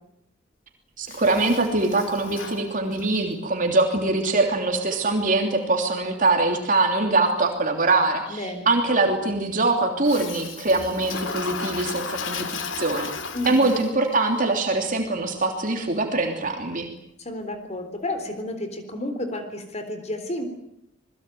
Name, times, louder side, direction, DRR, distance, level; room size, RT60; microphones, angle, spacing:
Toilet flush, 1.0-3.3 10.0-14.2, left 5 dB, 80° left, 3.2 m, -34 dB
voice 1, 1.0-13.1 13.4-16.9, right 2 dB, 45° right, 3 dB, 3.2 m, -23 dB
voice 2, 8.3-8.7 13.3-13.7 17.2-20.5, left 1 dB, 35° left, 8 dB, 3.8 m, -31 dB
28.0 x 21.5 x 9.3 m, 0.79 s
head